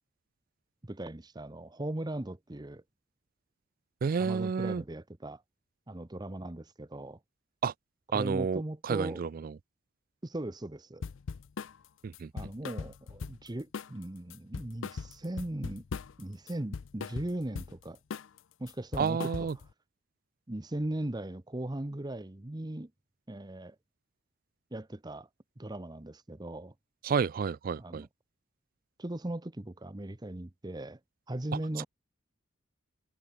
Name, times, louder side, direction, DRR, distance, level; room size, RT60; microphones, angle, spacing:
voice 1, 0.8-2.8 4.2-5.4 5.9-7.2 8.1-9.2 10.2-11.0 12.3-15.8 16.2-18.0 18.6-19.5 20.5-22.9 23.3-23.8 24.7-25.3 25.6-26.7 27.8-28.1 29.0-31.0 31.3-31.9, right 1 dB, 20° right, 0.8 m, -38 dB
voice 2, 4.0-4.8 7.6-7.7 8.1-9.5 12.0-12.3 19.0-19.6 27.0-28.1 31.5-31.6, right 5 dB, 45° right, 0.3 m, -30 dB
sound 1, 11.0-11.8 12.1-13.5 13.7-14.0 14.3-16.2 16.5-17.8 18.1-18.4 18.7-19.7, left 5 dB, 70° left, 0.5 m, -39 dB
head